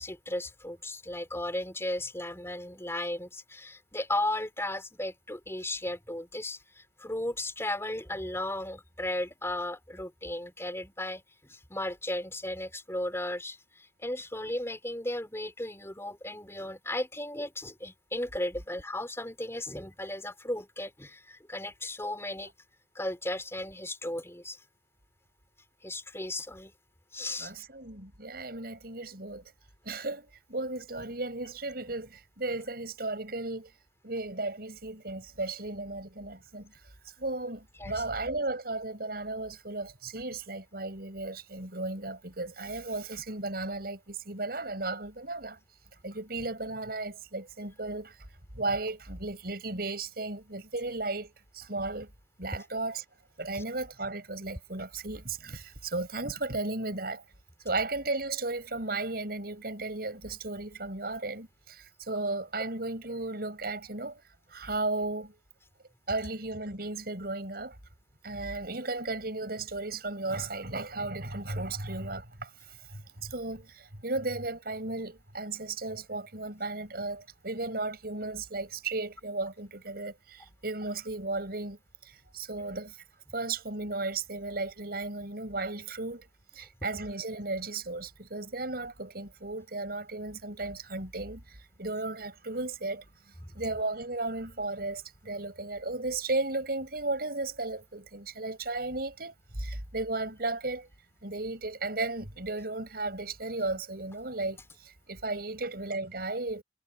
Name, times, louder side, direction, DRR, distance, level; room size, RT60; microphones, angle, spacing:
voice 1, 0.0-11.2 11.5-22.5 22.9-24.6 25.8-26.7 27.1-27.5 37.8-38.0 53.5-53.6, left 1 dB, 15° left, 4.3 m, -35 dB
voice 2, 27.4-29.5 29.8-33.7 34.0-36.7 37.0-45.6 46.0-48.2 48.5-52.1 52.4-53.0 53.4-57.2 57.6-64.2 64.5-65.4 66.1-67.8 68.2-83.0 83.3-86.3 86.5-93.0 93.5-100.9 101.2-106.6, right 2 dB, 60° right, 7.8 m, -35 dB
head